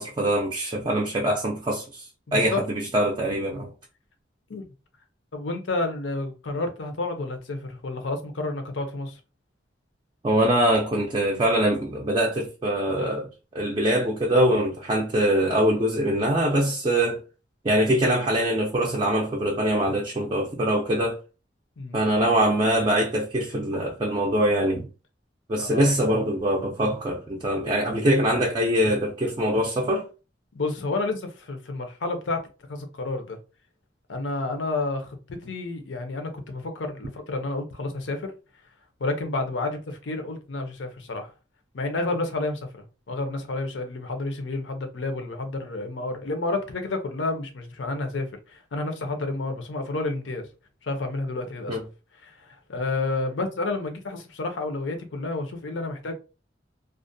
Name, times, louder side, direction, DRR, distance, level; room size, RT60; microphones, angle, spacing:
voice 1, 0.0-3.7 10.2-13.3 13.5-17.2 17.6-21.2 21.9-24.9 25.5-30.1 51.7-51.8, right 1 dB, 25° right, 0.4 m, -23 dB
voice 2, 2.3-2.6 3.5-3.7 4.5-4.7 5.3-9.2 21.8-22.1 25.7-25.9 30.5-32.4 32.7-33.4 34.1-38.3 39.0-41.3 41.7-50.5 50.8-51.8 52.2-56.1, left 2 dB, 85° left, 0.6 m, -30 dB
2.4 x 2.0 x 2.6 m
head